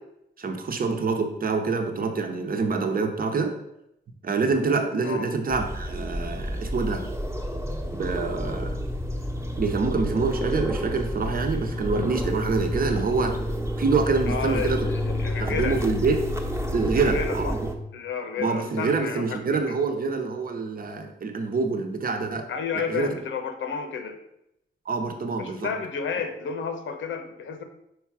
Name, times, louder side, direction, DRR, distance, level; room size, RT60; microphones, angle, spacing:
voice 1, 0.4-3.5 4.2-7.0 7.9-8.8 9.6-13.4 13.8-14.9 15.4-16.2 16.7-17.5 18.4-22.5 22.9-23.1 24.9-25.7, right 4 dB, 50° right, 5 dB, 0.9 m, -26 dB
sound 1, 5.5-17.8, equal, 15° right, 1.0 m, -29 dB
voice 2, 14.3-15.8 17.0-17.5 17.9-19.8 22.5-24.2 25.4-27.6, left 6 dB, 90° left, 6 dB, 0.8 m, -31 dB
5.1 x 4.7 x 4.8 m, 0.81 s
cardioid pair, 70°, 19 cm